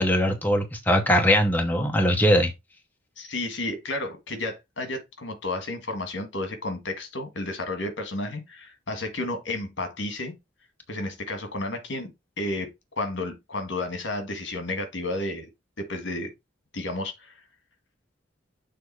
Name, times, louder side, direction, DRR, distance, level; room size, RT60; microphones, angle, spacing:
voice 1, 0.0-2.5, equal, 10° left, 0.9 m, -21 dB
voice 2, 3.2-10.4 10.9-12.1 12.4-12.7 13.0-15.5 15.8-16.3 16.7-17.4, left 2 dB, 65° left, 1.7 m, -32 dB
6.9 x 3.5 x 4.7 m
head